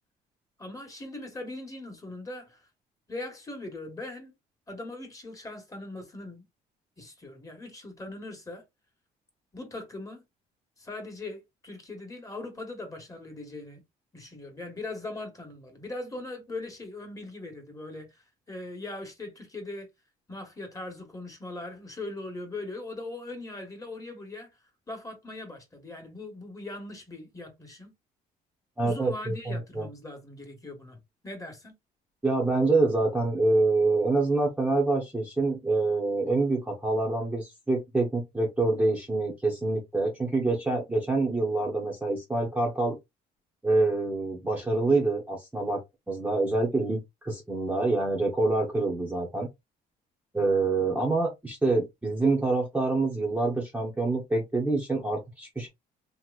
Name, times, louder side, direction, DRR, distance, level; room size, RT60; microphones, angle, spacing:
voice 1, 0.6-2.7 3.1-4.3 4.7-6.4 7.0-8.6 9.5-10.2 10.8-13.8 14.1-19.9 20.3-24.5 24.9-27.9 28.8-31.0 31.2-31.7, left 2 dB, 20° left, 1.4 m, -40 dB
voice 2, 28.8-29.9 32.2-43.0 43.6-45.8 46.1-49.5 50.3-55.7, right 2 dB, 10° right, 0.9 m, -26 dB
2.9 x 2.8 x 2.4 m
cardioid pair, 110°, 17 cm